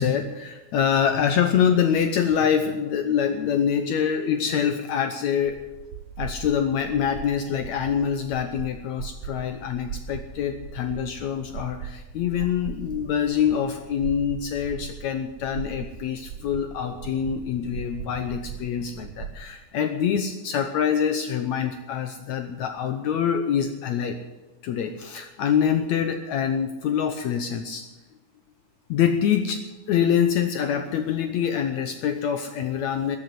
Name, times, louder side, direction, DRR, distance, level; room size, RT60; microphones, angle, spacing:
voice 1, 0.0-5.6 6.2-24.2 24.6-27.8 28.9-29.6 29.9-33.2, left 8 dB, 85° left, 7 dB, 1.6 m, -25 dB
sound 1, 5.4-19.4, right 7 dB, 70° right, 2.0 m, -39 dB
14.0 x 8.6 x 9.3 m, 1.1 s
omnidirectional pair, 4.3 m